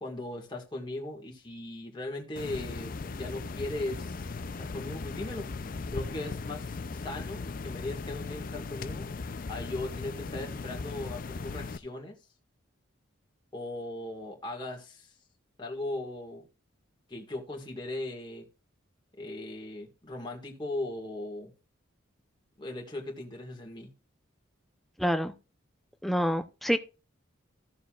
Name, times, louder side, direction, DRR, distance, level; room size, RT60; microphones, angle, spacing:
voice 1, 0.0-9.1 9.5-12.2 13.5-15.1 15.6-16.4 17.1-18.5 19.2-21.5 22.6-23.9, left 2 dB, 20° left, 1.7 m, -38 dB
sound 1, 2.4-11.8, left 4 dB, 40° left, 0.4 m, -38 dB
voice 2, 25.0-25.3 26.0-26.8, equal, ahead, 0.6 m, -27 dB
14.5 x 6.8 x 2.4 m
head